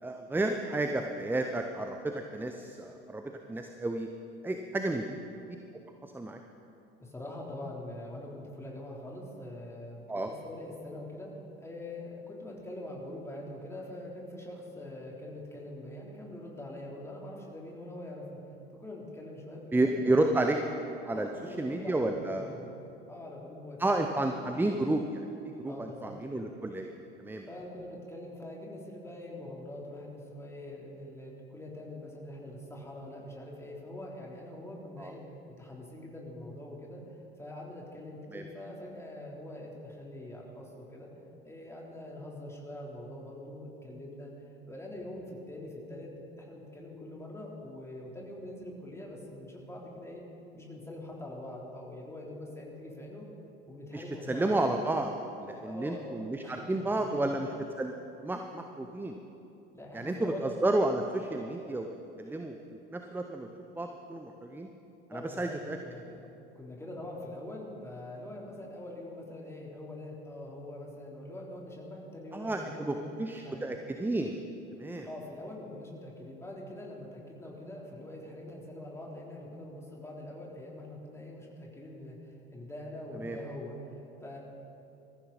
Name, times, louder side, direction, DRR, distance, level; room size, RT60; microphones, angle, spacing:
voice 1, 0.0-4.1 4.4-5.2 6.0-6.4 10.1-10.3 19.7-20.6 21.0-22.5 23.8-25.2 25.6-26.9 27.2-27.5 35.0-35.1 38.3-38.5 53.9-55.1 55.4-57.5 57.8-57.9 58.2-59.2 59.9-61.9 62.2-62.6 62.9-63.5 63.8-64.7 65.1-65.8 72.3-74.4 74.7-75.1 83.1-83.4, right 2 dB, 5° right, 5 dB, 0.8 m, -31 dB
voice 2, 7.0-11.3 11.6-18.4 18.7-20.4 21.1-22.8 23.1-24.1 24.4-24.8 25.7-26.5 27.5-35.2 35.6-37.0 37.4-41.1 41.4-44.3 44.7-46.1 46.4-50.2 50.5-53.3 53.7-54.5 55.6-56.0 56.4-57.4 59.7-60.5 65.1-66.2 66.6-73.7 75.1-84.4, left 1 dB, 10° left, -3 dB, 3.6 m, -44 dB
22.0 x 14.0 x 4.2 m, 2.8 s
figure-of-eight pair, 65°, 30 cm